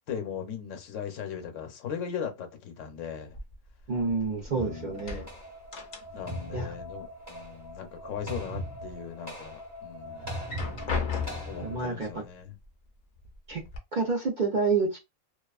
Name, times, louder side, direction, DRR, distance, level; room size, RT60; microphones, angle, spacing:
voice 1, 0.1-3.4 4.5-5.0 6.1-10.4 11.5-12.6, left 8 dB, 75° left, 1.0 m, -38 dB
sound 1, 3.3-4.6 4.9-6.5 6.7-7.7 8.2-8.9 9.4-9.5 10.3-11.7 12.6-12.7 13.2-13.8, left 5 dB, 50° left, 0.5 m, -36 dB
voice 2, 3.9-5.3 6.5-6.7 11.6-12.2 13.5-13.6 13.9-15.0, right 4 dB, 55° right, 0.5 m, -28 dB
sound 2, 4.6-11.8, equal, 15° right, 0.7 m, -40 dB
2.4 x 2.3 x 2.3 m
omnidirectional pair, 1.3 m